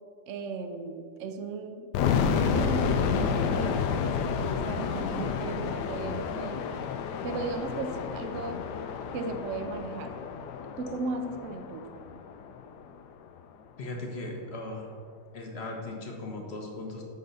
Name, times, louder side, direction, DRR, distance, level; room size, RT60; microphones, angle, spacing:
voice 1, 0.3-1.9 2.3-6.7 7.2-8.6 9.1-10.2 10.8-11.9, right 3 dB, 60° right, 6 dB, 0.8 m, -36 dB
sound 1, 1.9-12.8, left 6 dB, 70° left, 1.1 m, -30 dB
voice 2, 13.8-14.9 15.3-17.0, left 2 dB, 40° left, 1 dB, 1.2 m, -38 dB
9.1 x 3.8 x 6.8 m, 2.1 s
omnidirectional pair, 2.1 m